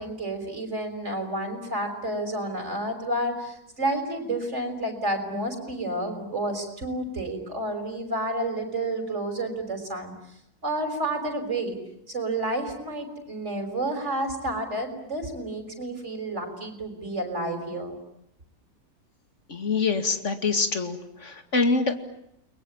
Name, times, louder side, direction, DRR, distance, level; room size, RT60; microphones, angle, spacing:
voice 1, 0.0-10.1 10.6-11.8 12.1-18.0, right 1 dB, 45° right, 5 dB, 6.0 m, -30 dB
voice 2, 19.5-21.9, left 4 dB, 50° left, 8 dB, 2.7 m, -25 dB
30.0 x 22.5 x 8.8 m, 0.78 s
omnidirectional pair, 1.7 m